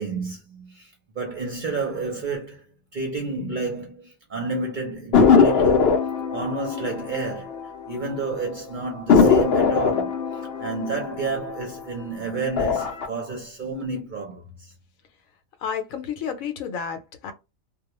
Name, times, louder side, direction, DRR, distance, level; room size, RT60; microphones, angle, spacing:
voice 1, 0.0-2.6 2.9-5.9 6.3-7.6 7.9-10.2 10.6-14.7, right 3 dB, 50° right, 0.6 m, -30 dB
sound 1, 5.1-8.2 8.5-8.6 9.1-12.0 12.4-13.1, left 5 dB, 60° left, 0.7 m, -20 dB
voice 2, 15.6-17.3, left 7 dB, 75° left, 1.0 m, -31 dB
2.3 x 2.3 x 2.9 m
omnidirectional pair, 1.4 m